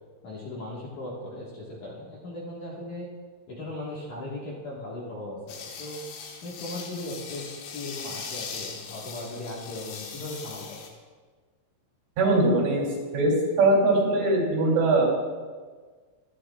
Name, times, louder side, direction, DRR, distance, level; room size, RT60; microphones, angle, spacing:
voice 1, 0.2-3.1 3.5-6.0 6.4-7.4 7.7-10.8, left 1 dB, 55° left, -5 dB, 2.4 m, -38 dB
sound 1, 5.5-10.9, left 6 dB, 80° left, 3.8 m, -40 dB
voice 2, 12.2-12.9 13.1-15.2, right 2 dB, 80° right, -3 dB, 5.7 m, -21 dB
24.0 x 11.0 x 2.4 m, 1.5 s
omnidirectional pair, 5.4 m